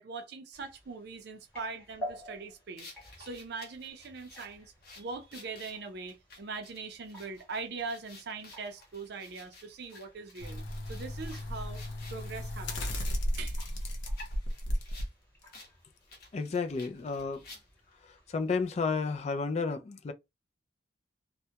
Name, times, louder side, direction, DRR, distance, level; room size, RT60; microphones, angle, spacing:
voice 1, 0.0-10.6 10.9-11.8 12.1-13.1 13.4-13.6, right 4 dB, 60° right, 0.4 m, -41 dB
sound 1, 0.5-19.3, equal, 10° left, 1.0 m, -52 dB
sound 2, 2.8-12.3 12.8-15.1 15.5-15.7 16.0-17.9, left 3 dB, 55° left, 0.8 m, -53 dB
sound 3, 10.4-15.0 15.5-15.6, equal, 90° left, 0.7 m, -34 dB
voice 2, 16.3-17.4 18.0-20.1, left 4 dB, 35° left, 0.3 m, -32 dB
2.2 x 2.1 x 2.8 m
head